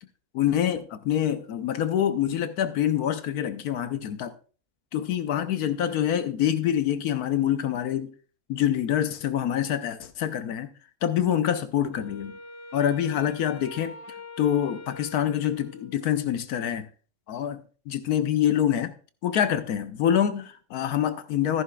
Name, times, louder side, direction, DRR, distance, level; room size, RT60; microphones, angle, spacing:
voice 1, 0.3-4.4 4.9-8.1 8.5-10.7 11.0-12.4 12.7-14.0 14.4-16.9 17.3-18.9 19.2-21.6, left 10 dB, 70° left, 1.2 m, -26 dB
Wind instrument woodwind instrument, 11.9-16.3, left 2 dB, 45° left, 0.9 m, -44 dB
14.0 x 11.0 x 2.3 m
omnidirectional pair, 1.7 m